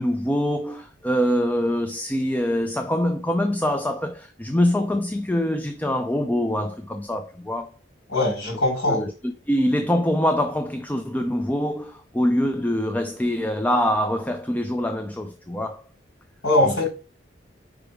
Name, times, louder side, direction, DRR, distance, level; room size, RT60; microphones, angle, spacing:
voice 1, 0.0-7.8 8.9-15.8 16.6-16.9, equal, 10° left, 0.4 m, -24 dB
voice 2, 8.1-9.0 16.4-16.9, left 2 dB, 60° left, 3.5 m, -21 dB
5.1 x 4.9 x 4.9 m
head